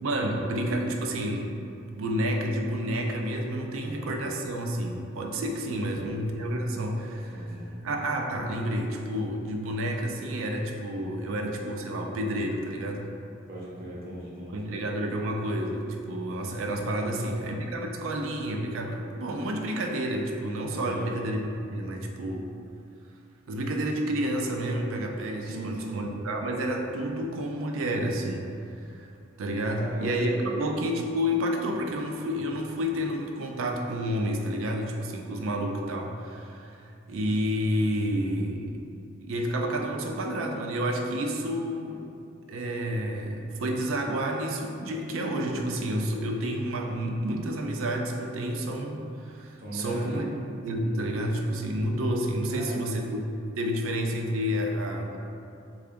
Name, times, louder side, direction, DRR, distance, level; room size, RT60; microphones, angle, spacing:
voice 1, 0.0-1.5 2.0-7.5 7.8-13.1 14.5-21.4 21.7-22.5 23.5-28.5 28.8-29.1 29.4-30.3 30.6-38.8 39.2-42.0 42.5-50.3 50.6-53.2 53.6-55.2, equal, 80° right, 2 dB, 0.4 m, -30 dB
voice 2, 3.8-4.1 5.7-6.1 7.3-7.7 13.5-14.7 17.0-17.4 20.7-21.2 25.4-26.0 29.6-30.5 49.6-50.2 52.5-52.8, right 1 dB, 45° right, -6 dB, 0.8 m, -39 dB
3.7 x 2.3 x 3.4 m, 2.6 s
head